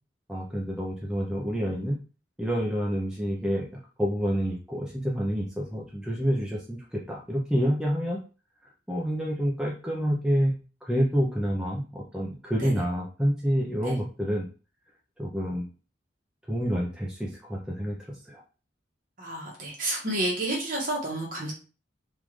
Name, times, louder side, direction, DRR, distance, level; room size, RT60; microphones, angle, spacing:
voice 1, 0.3-2.0 2.4-3.7 4.0-8.2 8.9-14.5 15.2-15.7 16.5-18.0 18.3-18.4, equal, 5° right, -4 dB, 0.5 m, -28 dB
voice 2, 19.2-21.5, right 1 dB, 50° right, -2 dB, 1.3 m, -30 dB
3.6 x 2.5 x 3.1 m, 0.36 s
head